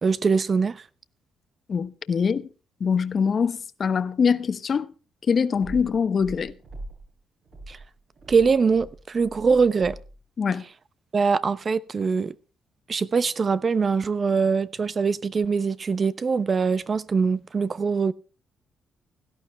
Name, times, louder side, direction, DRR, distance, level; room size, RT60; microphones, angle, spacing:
voice 1, 0.0-0.8 7.7-7.8 8.3-10.0 11.1-12.3 12.9-18.1, right 5 dB, 40° right, 0.8 m, -23 dB
voice 2, 1.7-2.5 2.8-4.9 5.3-6.5 10.4-10.6, left 6 dB, 45° left, 1.0 m, -23 dB
sound 1, 5.5-7.1 7.4-10.2, right 2 dB, 60° right, 6.9 m, -42 dB
17.0 x 12.0 x 3.2 m
cardioid pair, 90°, 0 cm